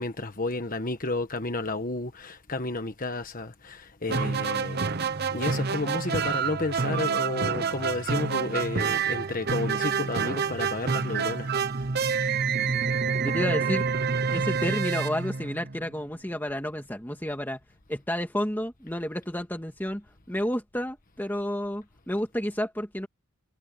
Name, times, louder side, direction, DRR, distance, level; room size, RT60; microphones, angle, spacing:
voice 1, 0.0-4.9 5.3-11.8, left 2 dB, 40° left, 1.4 m, -32 dB
sound 1, 4.1-15.9, right 5 dB, 45° right, 0.8 m, -28 dB
voice 2, 13.2-13.8 14.3-17.6 17.9-23.1, equal, 10° left, 2.2 m, -31 dB
head